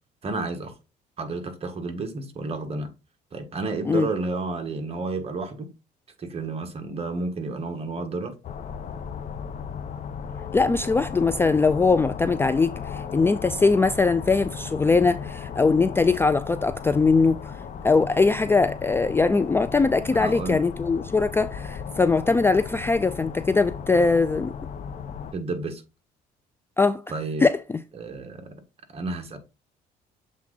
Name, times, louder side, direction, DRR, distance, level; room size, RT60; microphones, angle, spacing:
voice 1, 0.2-0.7 1.2-2.9 3.3-5.7 6.2-8.3 20.1-20.6 25.3-25.8 27.1-27.5 27.9-28.5 28.9-29.4, right 3 dB, 35° right, 1.6 m, -31 dB
sound 1, 8.4-25.3, left 7 dB, 45° left, 0.8 m, -36 dB
voice 2, 10.5-17.5 17.8-24.5 26.8-27.0 27.4-27.8, left 4 dB, 15° left, 0.3 m, -21 dB
7.3 x 3.6 x 3.9 m
cardioid pair, 110°, 17 cm